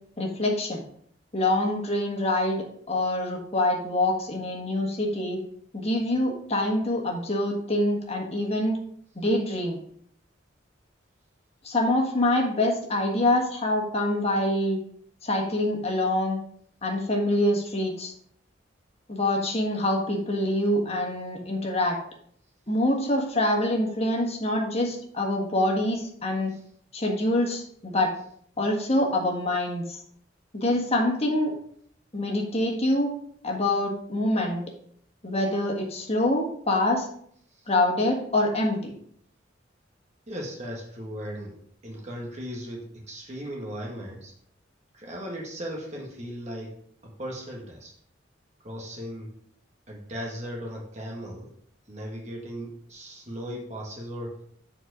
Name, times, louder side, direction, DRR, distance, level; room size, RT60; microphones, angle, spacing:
voice 1, 0.2-0.8 1.3-5.4 5.7-8.8 9.1-9.8 11.6-14.8 15.2-16.4 16.8-18.1 19.1-22.0 22.7-26.5 26.9-28.1 28.6-30.0 30.5-31.5 32.1-33.1 33.4-34.6 35.2-37.1 37.7-38.9, left 1 dB, 35° left, 0 dB, 1.5 m, -25 dB
voice 2, 40.3-44.3 44.9-46.7 47.0-47.9 48.6-49.3 49.9-51.5 51.9-54.4, equal, 35° right, -1 dB, 1.4 m, -37 dB
7.4 x 4.5 x 4.7 m, 0.64 s
head